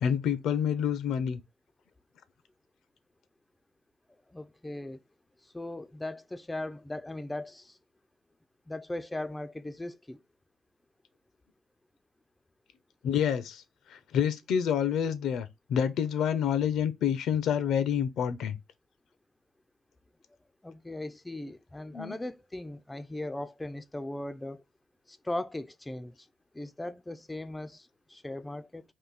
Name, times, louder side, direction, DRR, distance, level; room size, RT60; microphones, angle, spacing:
voice 1, 0.0-1.4 13.0-13.6 14.1-18.6 21.9-22.2, left 8 dB, 80° left, 0.6 m, -28 dB
voice 2, 4.3-5.0 5.5-7.8 8.7-10.2 20.6-24.6 25.1-26.1 26.5-28.8, left 1 dB, 10° left, 0.3 m, -38 dB
3.7 x 2.6 x 3.9 m
cardioid pair, 90°, 0 cm